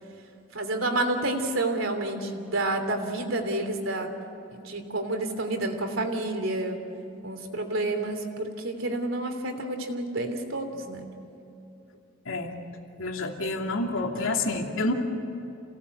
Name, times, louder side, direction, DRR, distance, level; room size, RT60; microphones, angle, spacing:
voice 1, 0.5-4.1 4.6-6.8 7.2-11.1, right 2 dB, 80° right, 5 dB, 3.2 m, -29 dB
voice 2, 12.3-12.6 13.0-14.9, left 2 dB, 85° left, 2 dB, 2.6 m, -28 dB
28.0 x 18.0 x 8.1 m, 2.9 s
head